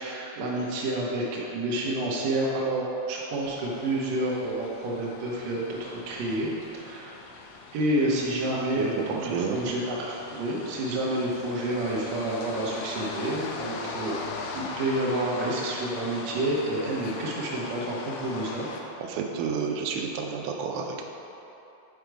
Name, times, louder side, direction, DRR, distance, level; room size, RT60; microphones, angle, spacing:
voice 1, 0.0-7.2 7.7-14.2 14.5-18.7, right 1 dB, 65° right, -4 dB, 1.8 m, -29 dB
sound 1, 3.4-18.8, left 3 dB, 90° left, 1.7 m, -40 dB
voice 2, 8.8-9.7 19.0-21.1, right 5 dB, 90° right, 2 dB, 2.5 m, -31 dB
6.4 x 5.2 x 4.7 m, 2.9 s
omnidirectional pair, 4.2 m